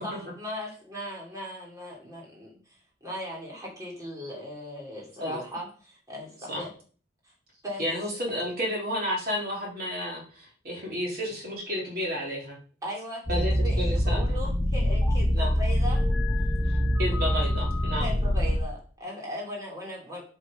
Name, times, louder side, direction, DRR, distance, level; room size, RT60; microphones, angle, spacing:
voice 1, 0.0-6.7 7.2-7.3 7.6-7.8 12.8-16.0 18.0-20.2, equal, 20° right, -3 dB, 3.4 m, -38 dB
voice 2, 7.8-12.6 13.3-14.2 15.3-15.5 16.7-18.0, equal, 50° right, -2 dB, 3.6 m, -31 dB
sound 1, 13.3-18.6, equal, 5° left, 3.8 m, -24 dB
9.3 x 8.2 x 5.2 m, 0.41 s
head